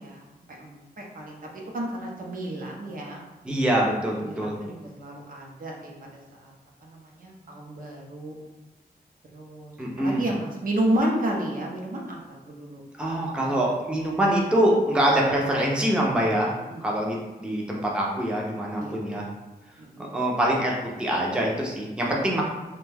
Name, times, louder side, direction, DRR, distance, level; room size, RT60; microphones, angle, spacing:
voice 1, 0.0-3.2 4.2-6.5 6.8-8.4 9.3-12.2 12.5-12.8 16.7-16.8 18.8-19.0 19.8-20.2, right 1 dB, 60° right, -1 dB, 0.6 m, -32 dB
voice 2, 3.4-4.6 9.8-10.2 13.0-16.5 16.8-19.2 20.1-22.4, right 1 dB, 5° right, -3 dB, 0.5 m, -24 dB
2.6 x 2.2 x 3.3 m, 1.1 s
wide cardioid pair, 115°, 16 cm